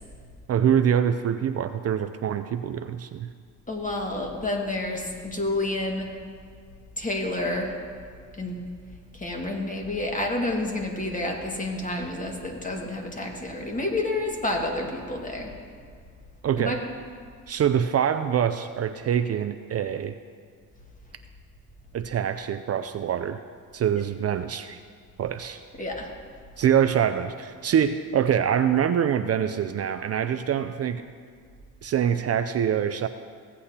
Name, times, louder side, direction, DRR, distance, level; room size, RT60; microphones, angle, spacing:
voice 1, 0.5-3.3 16.4-16.8 17.5-20.1 21.9-23.4 23.7-24.8 25.2-25.6 26.6-31.0 31.8-33.1, right 9 dB, 50° right, 9 dB, 0.4 m, -24 dB
voice 2, 3.7-6.1 7.0-7.8 8.4-8.6 9.1-15.5 16.6-16.8 25.8-26.1, left 2 dB, 25° left, 0 dB, 1.8 m, -29 dB
16.0 x 8.4 x 2.9 m, 2.1 s
cardioid pair, 85°, 33 cm